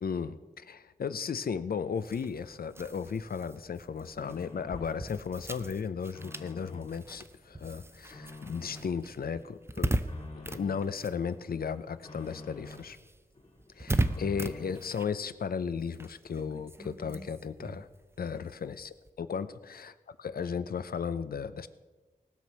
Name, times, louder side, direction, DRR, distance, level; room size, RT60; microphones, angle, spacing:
voice 1, 0.0-10.0 10.3-13.0 13.7-17.9 18.2-19.9 20.2-21.7, left 6 dB, 85° left, 13 dB, 0.6 m, -35 dB
sound 1, 2.0-11.9 12.2-19.1, right 1 dB, 15° right, 0.5 m, -38 dB
sound 2, 2.2-3.1 3.5-5.1 5.5-7.0 7.4-9.0 9.4-11.0 11.4-13.0 13.3-14.9, left 2 dB, 45° left, 2.1 m, -50 dB
18.5 x 6.2 x 5.6 m, 1.2 s
wide cardioid pair, 100°, 15 cm